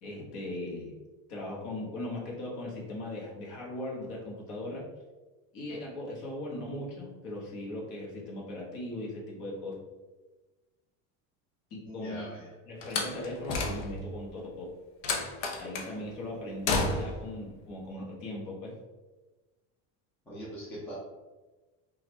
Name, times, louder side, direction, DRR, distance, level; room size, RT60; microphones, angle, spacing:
voice 1, 0.0-0.9 1.3-4.9 5.5-9.8 11.7-12.3 12.7-14.7 15.6-18.7, left 1 dB, 50° left, -3 dB, 1.1 m, -39 dB
voice 2, 11.8-12.5 20.3-20.9, equal, 5° left, -7 dB, 0.3 m, -41 dB
Slam, 12.8-14.2 15.0-15.9 16.6-17.3, left 3 dB, 65° left, 0.8 m, -31 dB
4.9 x 2.4 x 3.1 m, 1.2 s
cardioid pair, 175°, 39 cm